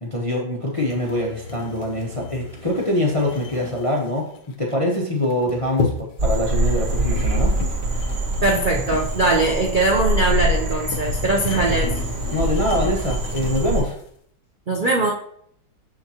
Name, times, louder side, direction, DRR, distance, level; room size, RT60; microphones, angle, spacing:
voice 1, 0.0-4.3 4.6-7.5 12.3-14.0, left 1 dB, 30° left, -2 dB, 0.7 m, -24 dB
Axe Drag, 0.8-14.1, left 4 dB, 75° left, 1.6 m, -33 dB
Frog, 6.2-13.8, right 1 dB, 80° right, 2.6 m, -24 dB
voice 2, 8.4-11.9 14.7-15.1, right 2 dB, 50° right, -1 dB, 0.5 m, -20 dB
6.4 x 6.3 x 2.9 m, 0.66 s
omnidirectional pair, 1.9 m